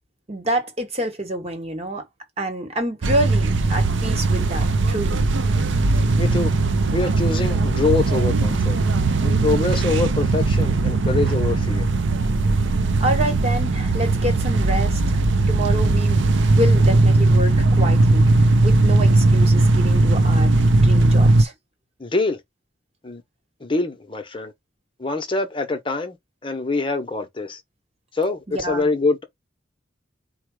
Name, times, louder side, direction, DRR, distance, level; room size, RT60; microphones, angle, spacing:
voice 1, 0.3-2.0 2.4-5.3 13.0-21.5 28.5-28.9, right 1 dB, 35° right, 1.2 m, -27 dB
sound 1, 3.0-21.4, right 2 dB, 85° right, 0.6 m, -18 dB
voice 2, 6.2-6.5 6.9-8.8 9.2-11.9 22.0-22.4 23.0-23.2 23.6-24.5 25.0-26.2 26.4-27.6 28.1-29.2, left 3 dB, 30° left, 0.8 m, -24 dB
4.6 x 2.2 x 4.7 m
head